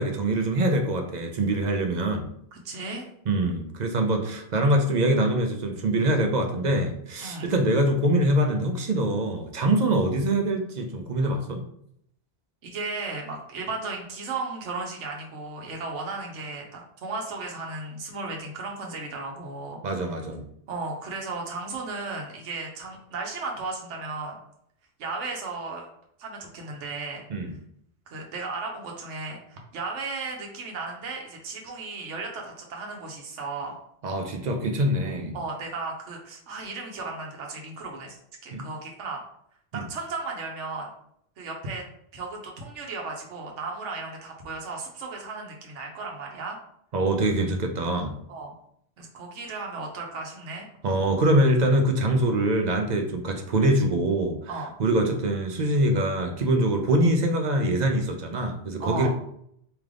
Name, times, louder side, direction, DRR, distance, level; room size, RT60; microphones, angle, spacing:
voice 1, 0.0-2.3 3.3-11.6 19.8-20.4 27.3-27.5 34.0-35.4 38.5-38.6 39.7-39.8 46.9-48.1 50.8-54.5 54.8-59.1, right 1 dB, 50° right, 4 dB, 0.6 m, -24 dB
voice 2, 2.6-3.1 7.2-7.5 12.6-19.8 20.7-24.4 25.0-25.9 26.2-27.2 28.1-33.8 35.3-39.2 39.7-40.9 41.4-41.8 42.1-46.6 48.3-48.5 49.0-50.7 54.5-54.7 58.8-59.1, right 3 dB, 75° right, 0 dB, 1.1 m, -35 dB
3.3 x 2.9 x 3.7 m, 0.70 s
omnidirectional pair, 1.2 m